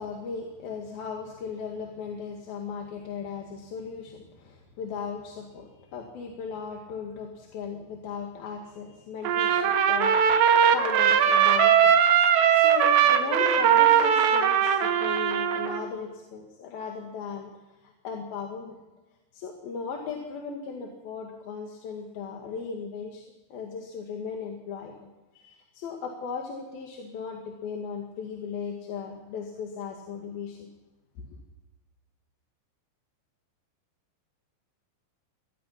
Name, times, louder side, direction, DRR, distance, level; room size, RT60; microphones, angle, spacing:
voice 1, 0.0-12.0 12.5-17.5 17.8-18.8 19.3-23.2 23.5-30.7, left 5 dB, 60° left, 1 dB, 3.6 m, -37 dB
Trumpet, 9.3-15.8, right 8 dB, 75° right, 3.5 m, -20 dB
24.5 x 19.0 x 5.8 m, 1.1 s
omnidirectional pair, 5.3 m